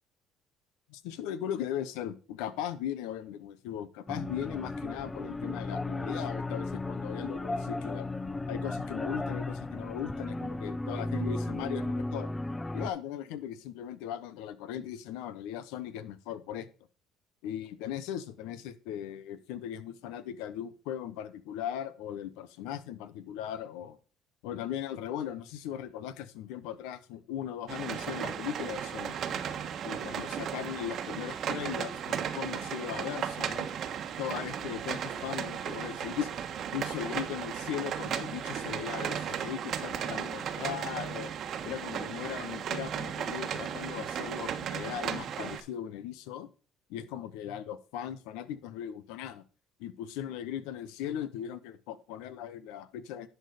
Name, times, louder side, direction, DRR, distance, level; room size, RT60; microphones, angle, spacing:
voice 1, 0.9-8.1 8.5-12.3 12.7-16.7 17.4-24.0 24.4-29.2 29.8-33.7 34.2-36.3 36.7-41.3 41.6-46.5 46.9-49.4 49.8-53.3, left 10 dB, 90° left, 14 dB, 0.9 m, -38 dB
sound 1, 4.1-12.9, left 2 dB, 15° left, 0.5 m, -35 dB
sound 2, 27.7-45.6, right 8 dB, 60° right, 1.2 m, -35 dB
11.0 x 4.5 x 4.9 m, 0.37 s
supercardioid pair, 90°, 0 cm